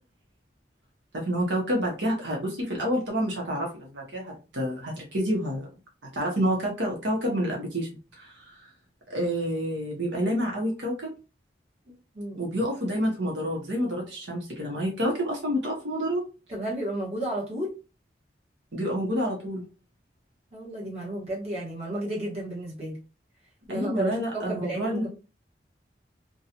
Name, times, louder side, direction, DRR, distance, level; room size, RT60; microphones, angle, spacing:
voice 1, 1.1-5.7 6.1-7.9 8.2-8.6 9.1-11.1 12.4-16.2 18.7-19.6 23.7-25.1, equal, 80° right, -1 dB, 0.9 m, -28 dB
voice 2, 12.1-12.6 16.5-17.7 20.5-23.0 23.7-25.1, right 1 dB, 35° right, -4 dB, 1.2 m, -32 dB
2.6 x 2.3 x 2.8 m, 0.32 s
head